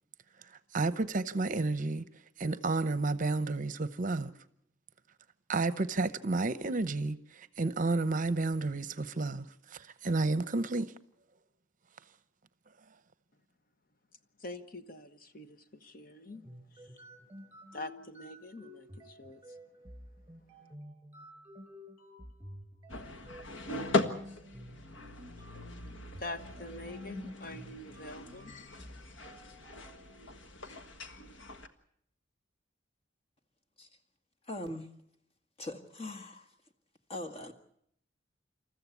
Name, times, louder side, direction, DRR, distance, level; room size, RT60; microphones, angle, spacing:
voice 1, 0.4-2.0 2.4-4.3 5.5-10.9, right 3 dB, 45° right, 0.8 m, -31 dB
voice 2, 14.4-16.4 16.7-16.8 17.7-19.4 26.2-28.5, left 2 dB, 50° left, 1.2 m, -45 dB
sound 1, 16.3-30.0, equal, 15° right, 3.8 m, -51 dB
sound 2, 22.9-31.7, left 3 dB, 85° left, 1.5 m, -39 dB
voice 3, 34.5-34.9 35.6-36.5 37.1-37.5, left 1 dB, 30° left, 1.7 m, -41 dB
28.0 x 14.0 x 8.3 m
head